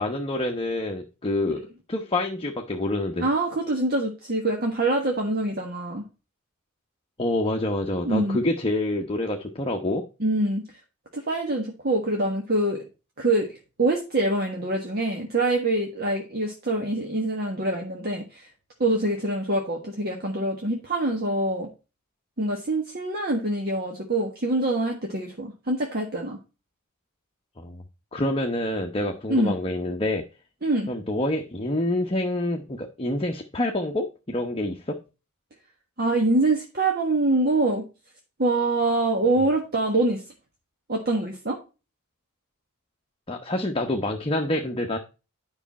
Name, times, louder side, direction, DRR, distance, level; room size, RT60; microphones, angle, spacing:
voice 1, 0.0-1.6 1.9-3.2 7.2-10.0 27.6-27.8 28.1-30.2 30.9-35.0 43.3-45.0, left 1 dB, 25° left, 1 dB, 1.0 m, -27 dB
voice 2, 3.2-6.0 8.0-8.4 10.2-10.6 11.1-12.8 13.2-18.5 18.8-21.7 22.4-26.4 29.3-29.5 30.6-30.9 36.0-37.8 38.4-40.2 40.9-41.6, right 2 dB, 45° right, 2 dB, 1.4 m, -25 dB
9.9 x 5.6 x 4.2 m, 0.31 s
head